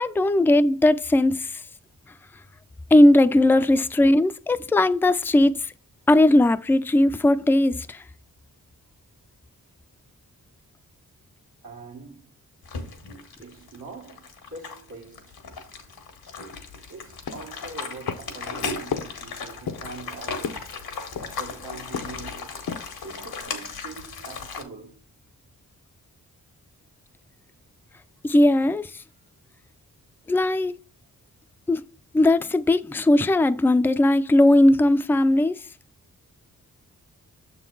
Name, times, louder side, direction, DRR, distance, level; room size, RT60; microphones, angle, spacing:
voice 1, 0.0-1.6 2.9-5.5 6.1-8.0 28.2-28.9 30.3-30.7 31.7-31.8 32.1-35.6, left 1 dB, 5° left, 0.4 m, -18 dB
voice 2, 11.6-12.3 13.4-15.4 16.9-20.7 21.2-22.6 22.9-25.0, right 3 dB, 85° right, 1.5 m, -43 dB
sound 1, 12.6-24.6, left 4 dB, 85° left, 1.3 m, -36 dB
sound 2, 17.3-17.7 18.1-18.5 18.9-19.2 19.7-20.0 20.4-20.8 21.2-21.5 21.9-22.3 22.6-23.0 23.4-23.5, left 7 dB, 70° left, 0.7 m, -33 dB
6.7 x 3.8 x 4.6 m
cardioid pair, 55°, 36 cm